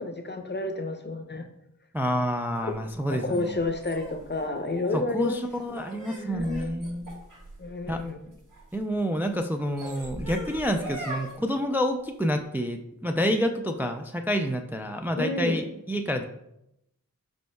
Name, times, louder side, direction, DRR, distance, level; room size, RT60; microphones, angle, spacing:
voice 1, 0.0-1.4 2.6-2.7 3.1-5.4 5.7-6.7 7.6-8.2 15.1-15.7, left 2 dB, 30° left, 5 dB, 0.6 m, -30 dB
voice 2, 1.9-3.6 4.9-7.1 7.9-8.0 8.7-16.2, equal, 5° right, 5 dB, 0.3 m, -28 dB
sound 1, 2.6-8.7 9.5-11.3, right 1 dB, 65° right, 1.8 m, -40 dB
5.2 x 4.5 x 2.3 m, 0.80 s
wide cardioid pair, 45°, 34 cm